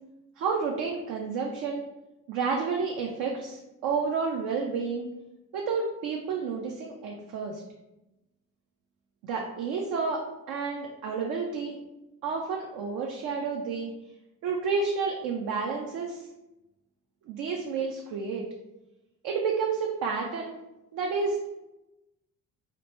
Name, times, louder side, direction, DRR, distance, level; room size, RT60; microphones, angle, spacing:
voice 1, 0.4-1.8 2.3-5.1 5.5-7.6 9.2-10.2 10.5-11.8 12.2-13.9 14.4-16.2 17.3-18.4 19.2-20.5 20.9-21.5, right 5 dB, 65° right, 0 dB, 0.5 m, -30 dB
2.9 x 2.1 x 3.0 m, 0.95 s
hypercardioid pair, 55°, 38 cm